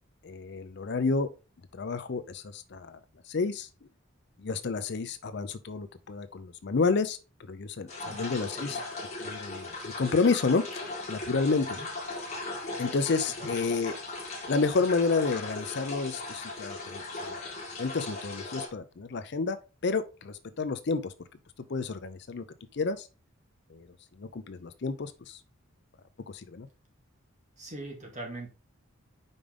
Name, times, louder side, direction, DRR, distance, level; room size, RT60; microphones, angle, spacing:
voice 1, 0.2-1.3 1.7-3.0 3.3-3.7 4.4-7.2 7.5-8.8 9.2-10.8 11.1-11.8 12.8-13.9 14.5-17.4 17.8-21.1 21.7-22.4 22.7-23.1 23.7-23.9 24.2-25.4 26.3-26.7, left 4 dB, 55° left, 0.5 m, -30 dB
sound 1, 7.9-18.7, left 2 dB, 30° left, 1.8 m, -38 dB
voice 2, 8.0-8.8 11.7-11.9 13.4-13.6 27.6-28.5, right 2 dB, 35° right, 2.0 m, -42 dB
5.2 x 5.0 x 3.7 m
head